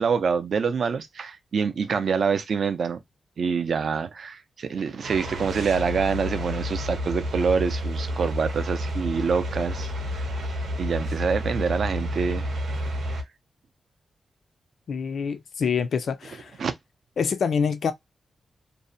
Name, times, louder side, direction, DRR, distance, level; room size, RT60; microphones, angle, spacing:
voice 1, 0.0-3.0 3.4-10.2 10.8-12.5 16.6-16.7, right 6 dB, 55° right, 0.4 m, -26 dB
sound 1, 5.0-13.2, equal, 80° right, 0.7 m, -30 dB
voice 2, 14.9-16.6 17.2-17.9, left 6 dB, 60° left, 0.3 m, -26 dB
2.6 x 2.0 x 2.6 m
wide cardioid pair, 175°, 0 cm